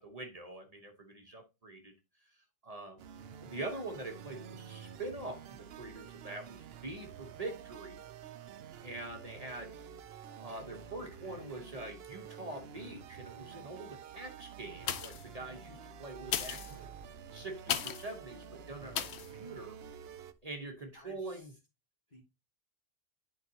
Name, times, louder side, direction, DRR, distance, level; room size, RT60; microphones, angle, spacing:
voice 1, 0.0-1.9 2.3-3.0 3.4-8.0 8.8-9.7 10.4-16.9 17.3-19.1 19.3-19.8 20.4-21.5, right 2 dB, 40° right, 1.0 m, -44 dB
sound 1, 3.0-20.3, right 8 dB, 75° right, 0.8 m, -49 dB
voice 2, 10.3-11.7 20.9-21.6 22.1-22.2, left 1 dB, 45° left, 1.9 m, -59 dB
sound 2, 14.8-15.4 16.2-18.1 18.9-19.3 19.8-19.9, left 9 dB, 90° left, 0.9 m, -37 dB
10.5 x 3.8 x 2.7 m
omnidirectional pair, 1.1 m